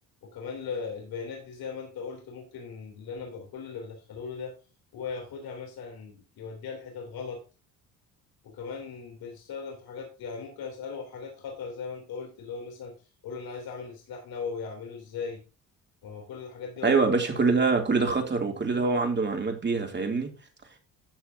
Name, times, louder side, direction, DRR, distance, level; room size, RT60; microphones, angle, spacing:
voice 1, 0.2-4.5 4.9-7.4 8.4-12.9 13.2-15.4 16.0-17.0, left 5 dB, 65° left, 0 dB, 3.6 m, -38 dB
voice 2, 16.8-20.3, right 4 dB, 30° right, 3 dB, 3.0 m, -25 dB
13.0 x 7.1 x 2.9 m, 0.33 s
supercardioid pair, 75°, 38 cm